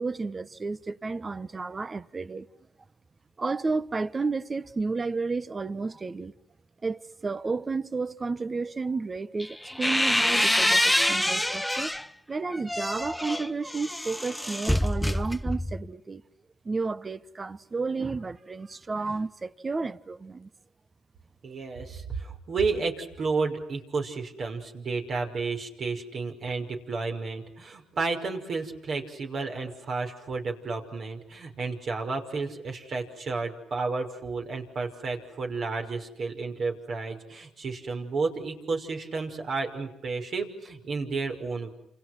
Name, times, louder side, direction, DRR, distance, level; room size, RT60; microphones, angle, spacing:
voice 1, 0.0-2.5 3.4-6.3 6.8-11.9 12.3-16.2 16.6-20.5, right 4 dB, 30° right, 1.2 m, -32 dB
sound 1, 9.4-12.1 12.5-15.9, left 1 dB, 5° left, 0.9 m, -26 dB
voice 2, 21.4-41.7, right 4 dB, 55° right, 5.7 m, -32 dB
29.5 x 28.0 x 6.1 m
cardioid pair, 90°, 0 cm